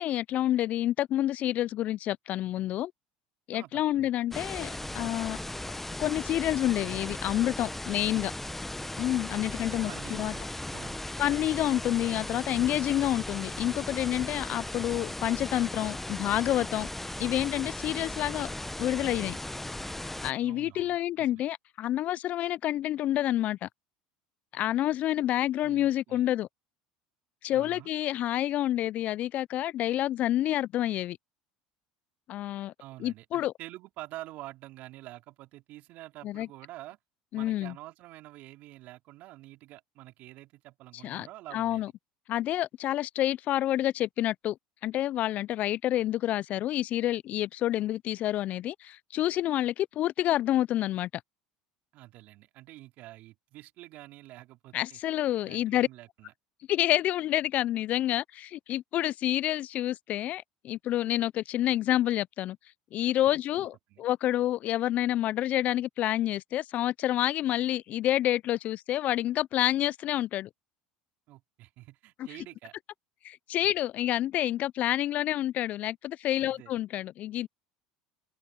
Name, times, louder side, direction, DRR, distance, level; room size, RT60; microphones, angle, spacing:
voice 1, 0.0-2.9 3.5-5.4 6.0-8.3 9.0-10.3 11.2-16.9 17.2-18.5 18.8-19.4 20.2-23.7 24.5-26.5 27.4-31.2 32.3-32.7 33.0-33.5 36.2-36.5 37.3-37.7 41.0-41.3 41.5-41.9 42.3-44.6 44.8-51.1 54.7-55.9 56.7-62.6 62.9-70.5 73.2-77.5, left 13 dB, 50° left, 0.6 m, -28 dB
voice 2, 3.5-4.4 9.3-10.5 10.7-11.0 20.4-21.4 25.6-26.3 27.5-27.9 32.8-37.0 37.3-41.8 51.9-55.0 55.4-56.3 63.5-64.0 71.3-72.7 76.4-76.7, right 17 dB, 60° right, 4.2 m, -48 dB
sound 1, 4.3-20.3, left 1 dB, 5° left, 1.0 m, -37 dB
hypercardioid pair, 75°, 3 cm